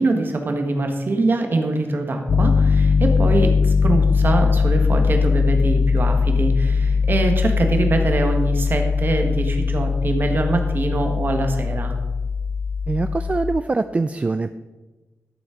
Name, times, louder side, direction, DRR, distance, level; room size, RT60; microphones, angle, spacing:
voice 1, 0.0-11.9, right 2 dB, 45° right, 4 dB, 1.4 m, -23 dB
Piano, 2.3-13.6, left 5 dB, 50° left, 0.4 m, -20 dB
voice 2, 12.9-14.5, right 3 dB, 25° right, 10 dB, 0.3 m, -23 dB
12.5 x 7.1 x 5.0 m, 1.2 s
wide cardioid pair, 170°, 5 cm